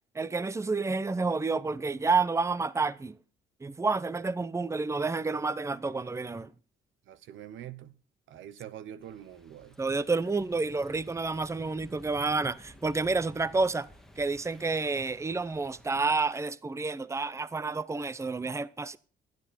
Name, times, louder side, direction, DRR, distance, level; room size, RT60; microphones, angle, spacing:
voice 1, 0.1-3.2 3.6-6.5 9.8-13.9 14.2-19.0, right 3 dB, 15° right, 0.7 m, -29 dB
voice 2, 7.1-7.9 8.3-9.7, right 10 dB, 80° right, 1.1 m, -44 dB
Moscow tram passing by, 9.0-16.3, equal, ahead, 2.0 m, -55 dB
16.0 x 12.0 x 4.3 m
cardioid pair, 90°, 20 cm